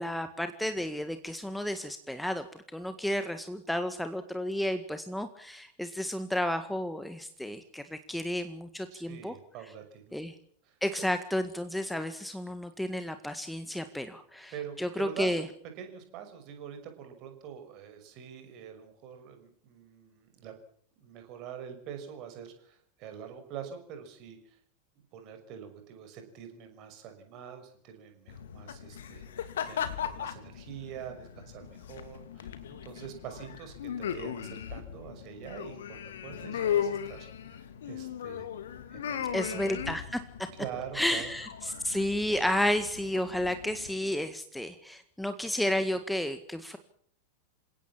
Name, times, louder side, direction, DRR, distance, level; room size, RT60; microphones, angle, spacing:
voice 1, 0.0-2.5 2.7-9.3 10.1-10.3 10.8-14.5 14.8-15.4 39.3-40.2 40.9-46.8, left 1 dB, ahead, 9 dB, 1.8 m, -32 dB
voice 2, 8.9-10.2 10.6-10.8 14.5-15.5 15.8-20.5 21.0-24.6 25.0-38.5 38.9-39.9 40.5-41.3, right 8 dB, 40° right, 7 dB, 6.1 m, -45 dB
sound 1, 28.3-43.9, left 9 dB, 60° left, 2.7 m, -37 dB
28.0 x 17.5 x 7.4 m, 0.62 s
figure-of-eight pair, 90°, 0 cm